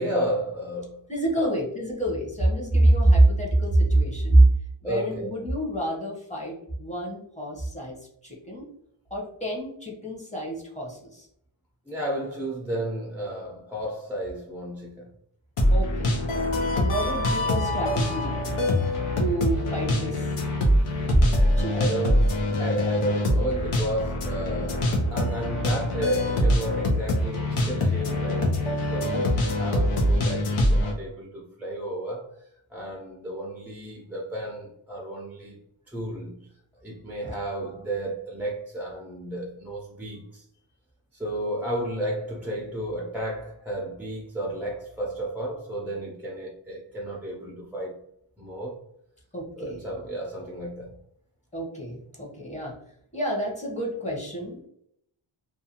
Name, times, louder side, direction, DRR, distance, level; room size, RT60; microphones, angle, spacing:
voice 1, 0.0-1.0 1.4-1.6 4.8-5.4 11.9-15.1 21.3-28.6 28.9-35.6 35.9-36.4 36.8-40.4 41.1-48.0 48.4-48.8 49.6-51.0, right 1 dB, 5° right, 0.4 m, -33 dB
voice 2, 1.1-4.5 4.8-8.0 8.2-8.7 9.1-11.3 15.7-18.4 19.2-20.3 21.1-21.2 21.6-21.9 37.2-37.3 49.3-49.8 51.5-52.7 53.1-54.7, right 1 dB, 15° left, 0.8 m, -25 dB
sound 1, 15.6-30.9, left 1 dB, 85° left, 0.8 m, -24 dB
2.5 x 2.4 x 2.8 m
wide cardioid pair, 95°, 50 cm